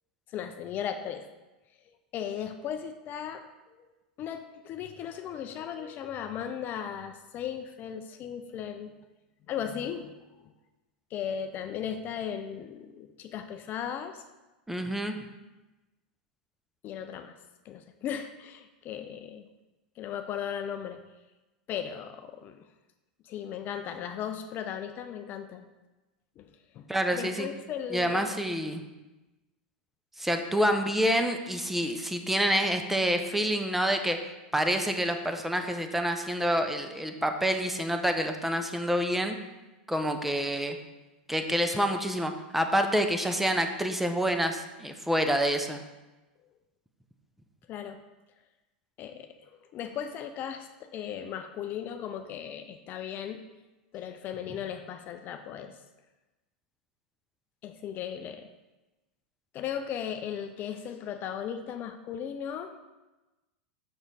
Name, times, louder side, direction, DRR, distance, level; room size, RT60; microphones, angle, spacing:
voice 1, 0.3-1.3 2.1-3.8 4.2-8.9 9.5-10.1 10.4-10.5 11.1-14.2 16.8-17.3 17.6-19.5 20.0-21.0 21.7-22.7 23.2-25.6 26.4-28.4 47.7-48.0 49.0-53.4 53.9-55.8 57.6-58.5 59.5-62.7, left 8 dB, 40° left, 7 dB, 0.5 m, -37 dB
voice 2, 14.7-15.2 26.9-27.5 27.9-28.8 30.2-34.2 34.5-39.4 39.9-40.8 41.3-45.8, equal, 5° right, 6 dB, 0.6 m, -27 dB
6.1 x 4.9 x 4.1 m, 1.1 s
hypercardioid pair, 110°, 5 cm